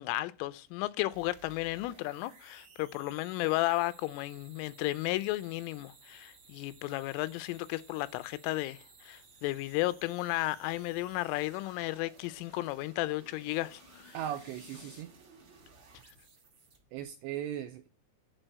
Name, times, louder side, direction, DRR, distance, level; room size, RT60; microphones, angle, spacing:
voice 1, 0.0-14.2, left 18 dB, 90° left, 3.2 m, -34 dB
sound 1, 1.1-17.0, right 4 dB, 65° right, 1.2 m, -58 dB
sound 2, 12.0-15.0, left 4 dB, 55° left, 1.2 m, -58 dB
voice 2, 14.1-15.1 16.9-17.9, right 11 dB, 85° right, 2.5 m, -38 dB
11.0 x 4.1 x 7.8 m
omnidirectional pair, 5.6 m